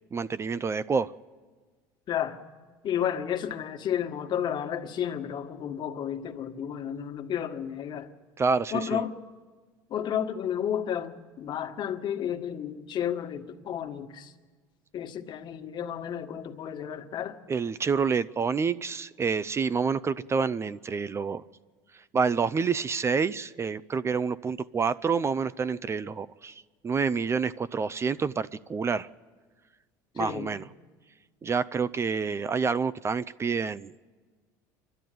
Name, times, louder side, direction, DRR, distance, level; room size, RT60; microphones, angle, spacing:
voice 1, 0.1-1.1 8.4-9.0 17.5-21.4 21.9-29.1 30.2-30.6 31.4-33.9, right 5 dB, 25° right, 0.5 m, -28 dB
voice 2, 2.1-2.4 2.8-8.1 8.7-9.2 9.9-14.3 14.9-17.4 30.2-30.5, left 9 dB, 45° left, 1.6 m, -32 dB
28.0 x 12.0 x 9.3 m
supercardioid pair, 95°, 10 cm